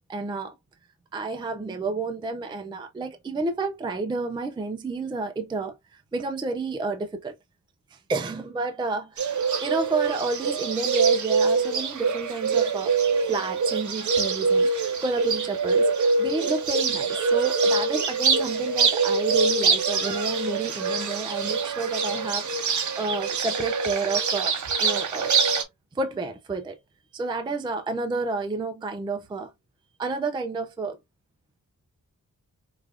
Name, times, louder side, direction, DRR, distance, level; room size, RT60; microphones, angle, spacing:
voice 1, 0.1-0.5 1.1-7.3 7.9-12.9 13.3-24.5 24.8-25.3 25.9-26.8 27.1-29.5 30.0-31.0, right 3 dB, 15° right, 0.3 m, -30 dB
Bird, 9.2-25.6, right 4 dB, 65° right, 0.8 m, -24 dB
4.8 x 2.3 x 2.4 m
wide cardioid pair, 180°, 33 cm